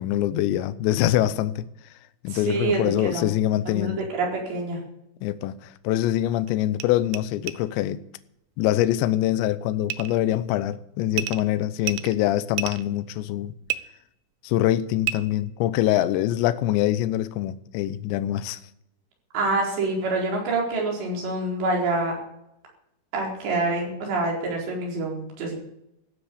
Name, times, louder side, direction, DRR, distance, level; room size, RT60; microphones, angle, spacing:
voice 1, 0.0-1.7 2.2-4.0 5.2-8.0 8.6-13.5 14.4-18.6, left 13 dB, 80° left, 2.9 m, -24 dB
voice 2, 2.3-3.3 3.7-4.8 19.3-22.1 23.1-25.6, right 2 dB, 65° right, 6.5 m, -26 dB
sound 1, 5.7-5.8 6.5-6.6 6.8-6.9 7.1-7.2 7.5-7.6 9.9-10.2 11.1-11.4 11.8-12.9 13.7-13.8 15.0-15.2, right 13 dB, 85° right, 2.2 m, -29 dB
14.5 x 9.8 x 8.5 m
omnidirectional pair, 5.5 m